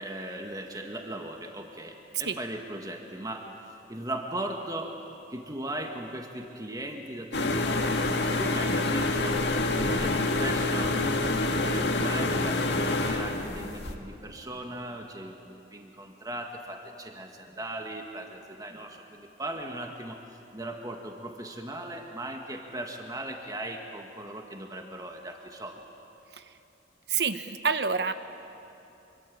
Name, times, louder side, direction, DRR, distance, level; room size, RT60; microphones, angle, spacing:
voice 1, 0.0-3.5 3.9-4.9 5.3-8.1 8.4-9.4 9.7-25.8, right 1 dB, 20° right, 3 dB, 1.9 m, -38 dB
sound 1, 7.3-13.9, left 2 dB, 75° left, 1.9 m, -27 dB
voice 2, 27.1-28.1, right 5 dB, 70° right, 10 dB, 1.2 m, -27 dB
26.0 x 24.0 x 8.7 m, 3.0 s
head